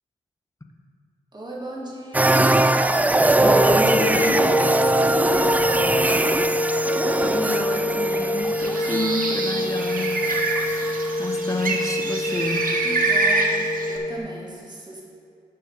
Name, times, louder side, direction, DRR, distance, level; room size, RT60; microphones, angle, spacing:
voice 1, 1.3-2.5 4.7-6.0 12.8-15.0, right 1 dB, 25° right, -2 dB, 2.0 m, -36 dB
sound 1, 2.1-11.3 11.6-11.7, right 2 dB, 10° right, 0.4 m, -22 dB
voice 2, 3.4-4.6 7.2-10.2 11.2-12.8, left 2 dB, 20° left, 3 dB, 1.1 m, -28 dB
sound 2, 3.8-14.2, left 1 dB, 35° left, 1.7 m, -26 dB
Bird, 8.4-14.0, right 3 dB, 60° right, 1.1 m, -26 dB
12.0 x 4.5 x 5.3 m, 2.3 s
supercardioid pair, 40°, 16 cm